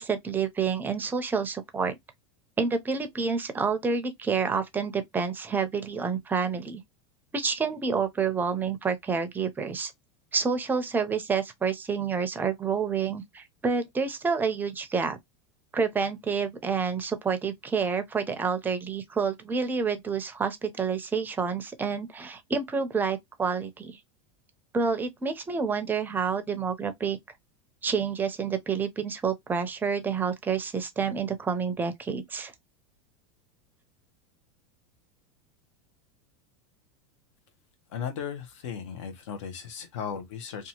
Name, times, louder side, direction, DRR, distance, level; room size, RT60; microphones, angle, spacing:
voice 1, 0.0-2.0 2.6-6.8 7.3-9.9 10.3-15.2 15.7-24.0 24.7-27.2 27.8-32.5, right 5 dB, 10° right, 0.4 m, -28 dB
voice 2, 37.9-40.7, left 7 dB, 80° left, 0.8 m, -36 dB
2.7 x 2.3 x 2.8 m
supercardioid pair, 145°, 16 cm